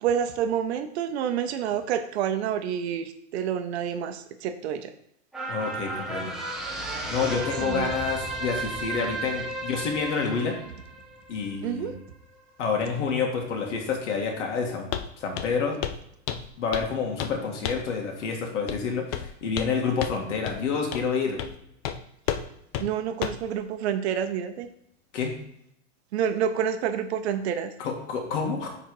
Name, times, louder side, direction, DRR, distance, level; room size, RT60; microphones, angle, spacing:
voice 1, 0.0-4.9 7.6-7.9 11.6-11.9 22.8-24.7 26.1-27.7, right 8 dB, 60° right, 8 dB, 0.8 m, -28 dB
sound 1, 5.3-12.0 12.4-12.5, right 2 dB, ahead, 0.7 m, -33 dB
voice 2, 5.5-6.3 7.1-10.6 11.3-11.9 12.6-14.9 15.2-15.8 16.6-21.4 25.1-25.3 27.8-28.7, left 5 dB, 75° left, 1 dB, 2.0 m, -28 dB
Walk footsteps, 14.9-15.1 15.4-15.6 15.8-16.0 16.3-16.9 17.2-17.4 17.7-17.9 18.7-18.8 19.1-19.7 20.0-20.2 20.5-20.6 20.9-21.1 21.4-21.6 21.8-22.0 22.3-22.5 22.7-22.9 23.2-23.5, left 9 dB, 35° left, 0.4 m, -31 dB
8.9 x 4.0 x 4.8 m, 0.74 s
supercardioid pair, 165°, 36 cm